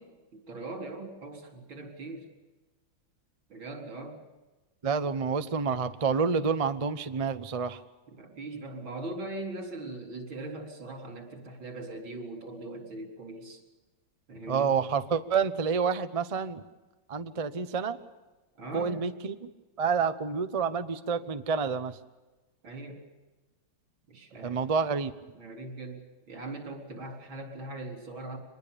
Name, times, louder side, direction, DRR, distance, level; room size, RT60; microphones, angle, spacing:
voice 1, 0.5-2.3 3.5-4.2 8.1-13.6 14.3-14.8 18.5-19.0 22.6-23.0 24.1-24.6 25.3-28.4, right 2 dB, 75° right, 3 dB, 4.8 m, -40 dB
voice 2, 4.8-7.8 14.5-16.6 17.1-18.0 18.7-19.3 19.8-22.0 24.4-25.1, right 5 dB, 40° right, 10 dB, 0.4 m, -28 dB
25.0 x 20.0 x 7.0 m, 1.2 s
omnidirectional pair, 2.2 m